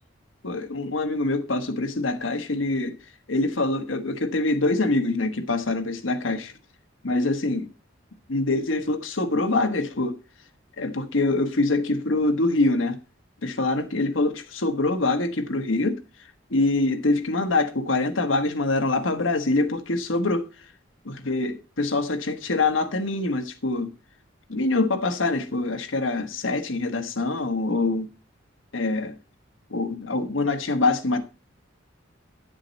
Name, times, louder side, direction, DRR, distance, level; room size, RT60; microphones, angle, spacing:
voice 1, 0.4-3.0 3.3-6.5 7.0-7.7 8.3-10.2 10.8-13.0 13.4-16.0 16.5-20.4 21.0-23.9 24.5-28.1 28.7-29.2 29.7-31.2, left 2 dB, 90° left, 1.3 m, -24 dB
10.5 x 7.6 x 4.1 m
head